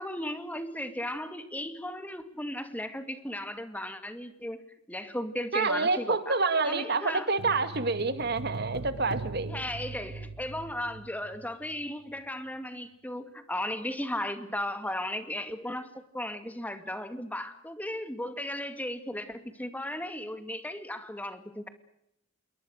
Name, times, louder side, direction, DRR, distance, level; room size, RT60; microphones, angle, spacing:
voice 1, 0.0-4.6 4.9-6.4 6.6-7.3 9.5-15.9 16.1-21.7, left 1 dB, 10° left, 9 dB, 2.3 m, -36 dB
voice 2, 5.5-9.5, right 3 dB, 50° right, 11 dB, 2.3 m, -28 dB
sound 1, 7.4-11.8 12.1-12.2, right 3 dB, 90° right, 1.2 m, -41 dB
28.0 x 22.5 x 6.5 m, 0.78 s
head